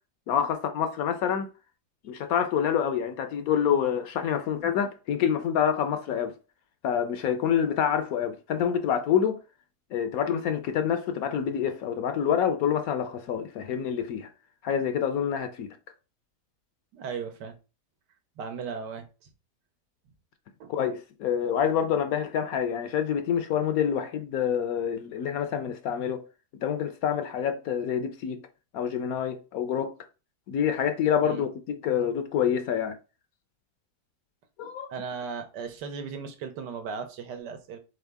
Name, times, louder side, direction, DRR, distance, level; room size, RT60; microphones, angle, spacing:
voice 1, 0.3-1.5 2.0-6.3 6.8-9.4 9.9-14.3 14.6-15.7 20.7-26.2 26.6-28.4 28.7-29.9 30.5-33.0 34.6-34.9, left 8 dB, 70° left, 0.9 m, -27 dB
voice 2, 16.9-17.5 18.4-19.1 20.6-20.7 31.2-31.4 34.9-37.8, right 6 dB, 90° right, 1.4 m, -36 dB
3.9 x 3.6 x 3.4 m
omnidirectional pair, 1.8 m